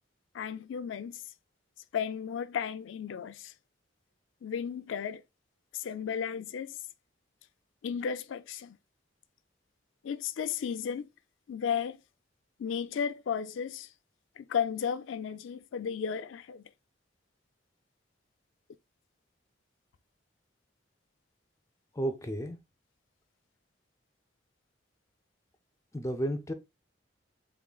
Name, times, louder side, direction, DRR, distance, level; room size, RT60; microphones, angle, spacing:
voice 1, 0.3-1.2 1.9-3.5 4.4-5.2 5.7-6.8 7.8-8.8 10.0-11.1 11.5-12.0 12.6-13.9 14.4-16.6, left 7 dB, 75° left, 0.3 m, -34 dB
voice 2, 21.9-22.6 25.9-26.5, right 1 dB, 15° left, 0.5 m, -32 dB
3.7 x 3.6 x 2.3 m
head